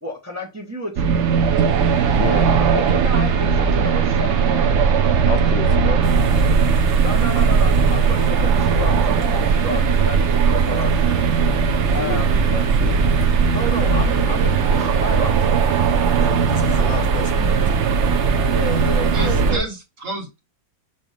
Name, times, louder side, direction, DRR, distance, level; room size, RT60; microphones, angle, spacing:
voice 1, 0.0-1.3 2.6-4.8 5.7-6.0 7.0-11.3 11.9-12.6 13.5-15.6 18.5-19.7, left 1 dB, 10° right, 0.9 m, -30 dB
sound 1, 1.0-19.6, right 6 dB, 65° right, 0.7 m, -18 dB
voice 2, 2.1-2.5 5.3-6.0 6.4-6.6 12.0-13.0, left 7 dB, 70° left, 1.3 m, -30 dB
voice 3, 5.6-6.4 7.3-7.5 16.0-17.9, left 4 dB, 90° left, 1.9 m, -33 dB
sound 2, 6.0-19.5, right 1 dB, 25° right, 1.5 m, -38 dB
voice 4, 19.1-20.4, right 2 dB, 45° right, 1.7 m, -30 dB
7.1 x 2.9 x 5.0 m
omnidirectional pair, 2.0 m